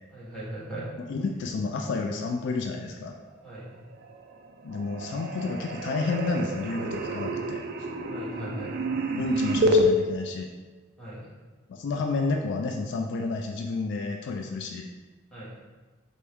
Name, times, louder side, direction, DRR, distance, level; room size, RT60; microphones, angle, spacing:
voice 1, 0.1-0.9 3.4-3.8 8.1-8.8 11.0-11.3 15.3-15.5, right 1 dB, 5° left, -8 dB, 1.3 m, -38 dB
voice 2, 1.1-3.2 4.6-7.9 9.2-10.5 11.7-14.9, left 3 dB, 60° left, 2 dB, 0.3 m, -30 dB
sound 1, 3.9-4.5 4.7-9.9, equal, 50° right, 0.3 m, -28 dB
4.4 x 2.6 x 3.4 m, 1.3 s
head